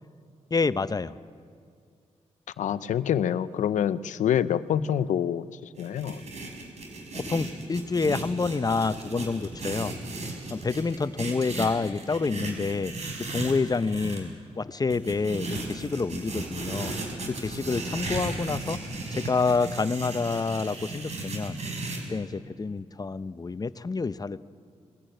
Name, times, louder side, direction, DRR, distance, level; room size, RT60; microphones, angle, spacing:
voice 1, 0.5-1.1 7.1-9.9 10.5-12.9 13.2-17.0 17.3-21.6 22.1-24.4, left 4 dB, 30° left, 15 dB, 0.6 m, -28 dB
voice 2, 2.6-5.5 5.8-6.3, left 9 dB, 85° left, 15 dB, 0.6 m, -26 dB
sound 1, 5.8-14.2 14.9-22.0, right 2 dB, 65° right, 4.4 m, -35 dB
21.0 x 14.0 x 9.1 m, 2.2 s
cardioid pair, 65°, 12 cm